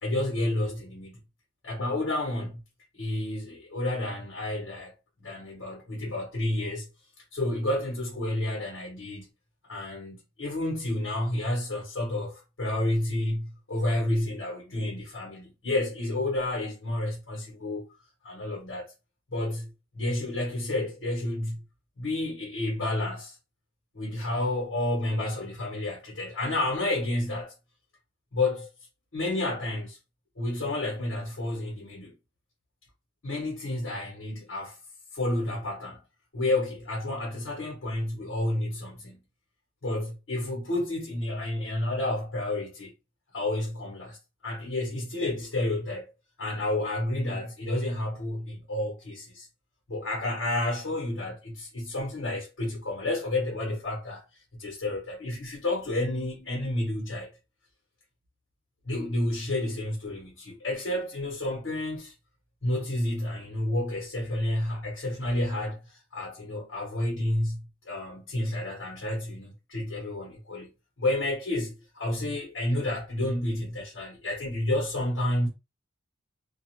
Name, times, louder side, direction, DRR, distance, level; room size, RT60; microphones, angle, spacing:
voice 1, 0.0-1.2 1.6-2.6 2.9-4.9 5.2-6.9 7.3-9.3 9.7-17.9 18.2-18.9 19.3-21.6 22.0-23.4 23.9-27.5 28.3-28.7 29.1-30.0 30.4-32.1 33.2-34.8 35.1-36.0 36.3-39.2 39.8-42.9 43.3-46.1 46.4-49.5 49.9-54.2 54.6-57.3 58.8-62.1 62.6-75.5, left 1 dB, 70° left, 0.9 m, -30 dB
2.3 x 2.1 x 2.9 m
head